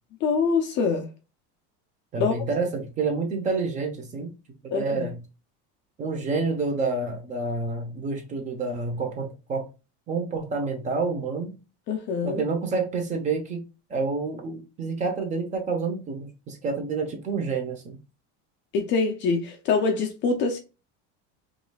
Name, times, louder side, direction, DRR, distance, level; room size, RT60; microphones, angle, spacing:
voice 1, 0.2-1.1 2.2-2.3 4.7-5.1 11.9-12.4 18.7-20.6, left 4 dB, 35° left, 0.5 m, -24 dB
voice 2, 2.1-4.3 4.6-5.2 6.0-9.7 10.1-11.6 12.2-13.6 13.9-18.0, right 4 dB, 20° right, 0.8 m, -28 dB
5.0 x 3.2 x 2.3 m
cardioid pair, 175°, 35 cm